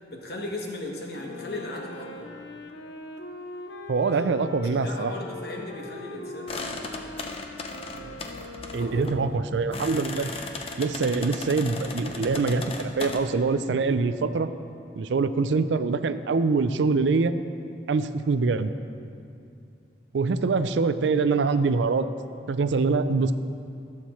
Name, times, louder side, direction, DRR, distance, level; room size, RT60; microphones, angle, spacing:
voice 1, 0.1-2.3 4.1-4.2 4.8-7.3 8.8-9.1, left 1 dB, 60° left, 0 dB, 1.2 m, -37 dB
Wind instrument woodwind instrument, 1.1-9.5, left 2 dB, 85° left, 0.7 m, -41 dB
voice 2, 3.9-5.1 8.0-8.2 8.7-10.3 10.8-14.5 15.0-17.3 17.9-18.7 20.1-22.1 22.5-23.3, right 4 dB, 90° right, 12 dB, 0.4 m, -24 dB
sound 1, 6.5-13.2, left 3 dB, 30° left, 0.6 m, -37 dB
15.5 x 7.2 x 3.1 m, 2.5 s
head